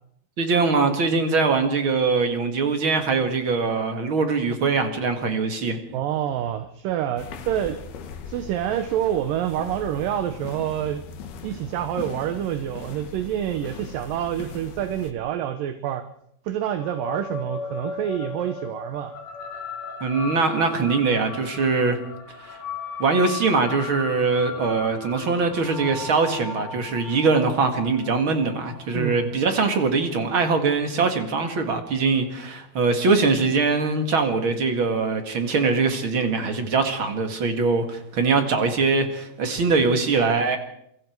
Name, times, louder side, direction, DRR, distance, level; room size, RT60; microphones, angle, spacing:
voice 1, 0.4-5.8 20.0-22.0 22.4-22.6 23.0-40.6, right 4 dB, 40° right, 6 dB, 2.4 m, -22 dB
voice 2, 5.9-7.8 8.3-11.0 11.4-16.1 16.5-19.1 28.9-29.3, right 11 dB, 70° right, 10 dB, 2.4 m, -27 dB
sound 1, 7.2-15.1, left 5 dB, 75° left, 3.5 m, -39 dB
sound 2, 16.8-31.5, left 4 dB, 35° left, 2.0 m, -37 dB
27.5 x 23.0 x 4.7 m, 0.73 s
omnidirectional pair, 4.5 m